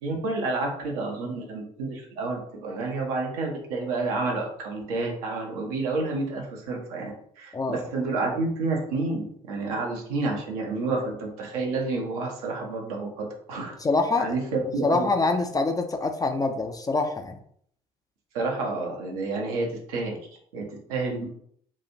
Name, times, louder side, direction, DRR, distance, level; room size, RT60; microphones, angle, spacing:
voice 1, 0.0-13.8 14.2-15.1 18.3-20.2 20.5-21.3, right 3 dB, 70° right, 0 dB, 0.7 m, -29 dB
voice 2, 13.8-14.3 14.8-17.4, left 3 dB, 20° left, 5 dB, 0.4 m, -25 dB
2.9 x 2.4 x 2.7 m, 0.64 s
figure-of-eight pair, 45°, 20 cm